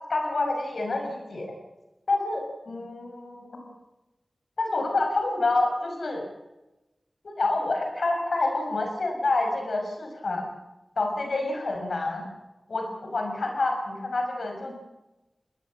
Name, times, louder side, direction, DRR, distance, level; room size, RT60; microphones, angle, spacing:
voice 1, 0.1-1.5 2.1-3.7 4.6-6.2 7.2-10.5 11.0-12.2 12.7-14.8, left 2 dB, 80° left, 3 dB, 5.9 m, -28 dB
22.0 x 19.0 x 7.5 m, 1.0 s
cardioid pair, 45°, 0 cm